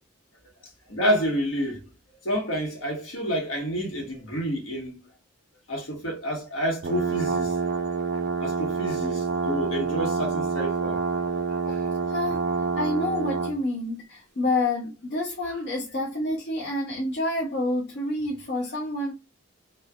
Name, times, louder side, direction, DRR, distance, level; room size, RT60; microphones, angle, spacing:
voice 1, 0.9-1.9 2.2-5.0 5.7-7.5 8.4-11.0, equal, 75° left, 1.2 m, -29 dB
sound 1, 6.8-13.6, right 5 dB, 55° right, 0.3 m, -27 dB
voice 2, 11.6-12.4 12.8-19.1, left 2 dB, 55° left, 0.6 m, -28 dB
3.1 x 2.2 x 2.3 m
head